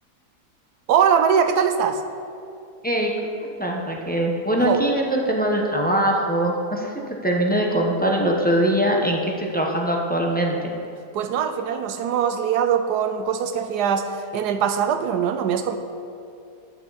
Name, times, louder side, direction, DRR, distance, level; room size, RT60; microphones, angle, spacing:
voice 1, 0.9-2.0 4.6-4.8 11.1-15.8, right 7 dB, 85° right, 8 dB, 1.2 m, -22 dB
voice 2, 3.4-10.7, right 1 dB, 10° left, -1 dB, 0.7 m, -22 dB
10.5 x 9.1 x 4.0 m, 2.6 s
omnidirectional pair, 1.7 m